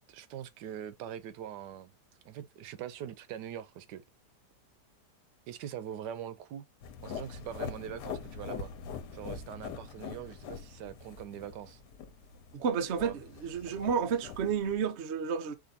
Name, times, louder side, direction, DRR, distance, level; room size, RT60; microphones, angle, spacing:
voice 1, 0.1-1.9 2.2-4.0 5.5-6.6 7.0-8.7 9.1-11.8 13.0-13.2, right 10 dB, 85° right, 1.3 m, -42 dB
sound 1, 6.8-14.9, left 6 dB, 85° left, 1.4 m, -43 dB
voice 2, 12.5-15.5, right 6 dB, 55° right, 0.8 m, -31 dB
5.0 x 2.6 x 4.1 m
omnidirectional pair, 1.8 m